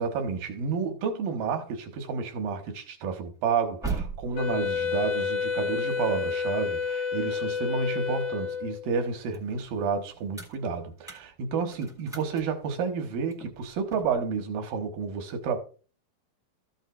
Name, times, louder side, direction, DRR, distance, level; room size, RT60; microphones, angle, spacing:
voice 1, 0.0-15.6, right 5 dB, 85° right, 3.2 m, -30 dB
sound 1, 3.3-8.4 8.8-14.2, right 4 dB, ahead, 0.8 m, -41 dB
Wind instrument woodwind instrument, 4.4-8.9, left 6 dB, 75° left, 2.2 m, -29 dB
14.0 x 9.1 x 2.5 m
omnidirectional pair, 4.0 m